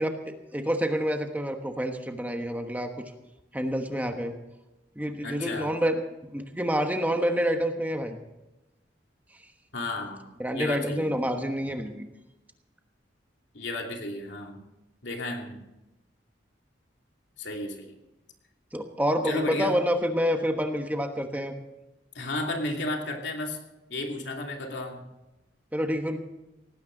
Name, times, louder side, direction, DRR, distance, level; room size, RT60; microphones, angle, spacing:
voice 1, 0.0-3.0 3.5-4.3 5.0-6.0 6.3-8.2 10.4-12.1 18.7-21.6 25.7-26.2, equal, 10° right, 5 dB, 1.2 m, -28 dB
voice 2, 5.2-5.7 9.7-11.2 13.5-14.6 15.0-15.6 17.4-18.0 19.2-19.8 22.1-23.6 23.9-25.0, left 1 dB, 70° left, 2 dB, 2.8 m, -33 dB
18.5 x 16.0 x 4.0 m, 0.97 s
head